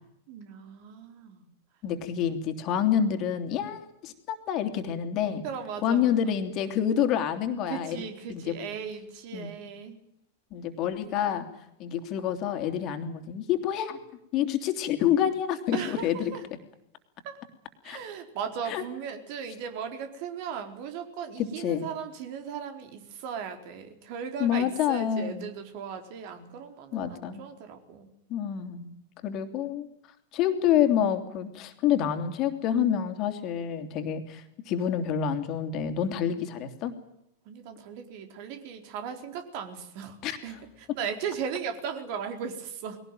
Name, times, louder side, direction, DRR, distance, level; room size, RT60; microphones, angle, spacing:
voice 1, 0.0-1.5 5.4-6.3 7.7-10.0 15.7-16.4 17.2-17.4 17.8-28.1 36.3-36.5 37.4-43.0, right 7 dB, 50° right, 6 dB, 4.2 m, -37 dB
voice 2, 1.8-5.4 5.8-8.0 8.3-8.6 9.3-9.5 10.5-11.5 11.8-14.0 14.3-16.3 17.8-18.0 18.7-18.8 21.4-21.9 24.4-25.5 26.9-27.5 28.3-29.9 30.3-36.9 40.2-40.4, left 9 dB, 40° left, 7 dB, 3.1 m, -28 dB
22.0 x 18.0 x 9.2 m, 0.79 s
figure-of-eight pair, 95°, 0 cm